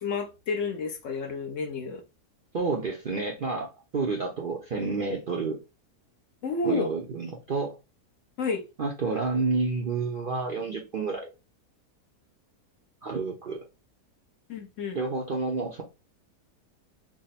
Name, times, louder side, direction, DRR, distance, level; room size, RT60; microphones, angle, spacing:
voice 1, 0.0-2.0 6.4-6.9 8.4-8.6 14.5-15.0, left 3 dB, 60° left, 1.0 m, -30 dB
voice 2, 2.5-3.7 3.9-5.6 6.6-7.7 8.8-11.3 13.0-13.6 14.9-15.8, right 4 dB, 55° right, 0.6 m, -29 dB
3.6 x 2.1 x 4.0 m
omnidirectional pair, 1.6 m